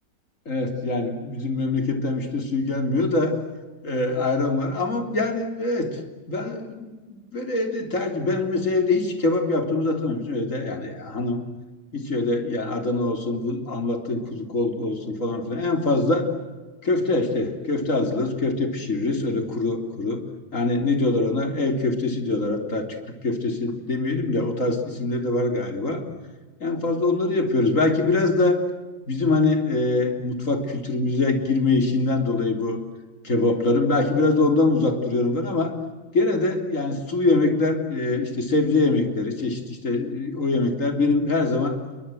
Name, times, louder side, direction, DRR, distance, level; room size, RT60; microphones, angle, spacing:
voice 1, 0.5-3.4 3.8-6.0 6.3-11.4 11.9-16.3 16.8-26.0 26.6-28.6 29.1-32.8 33.2-35.7 36.1-41.8, left 2 dB, 55° left, 5 dB, 3.8 m, -23 dB
29.0 x 23.5 x 7.8 m, 1.2 s
omnidirectional pair, 1.7 m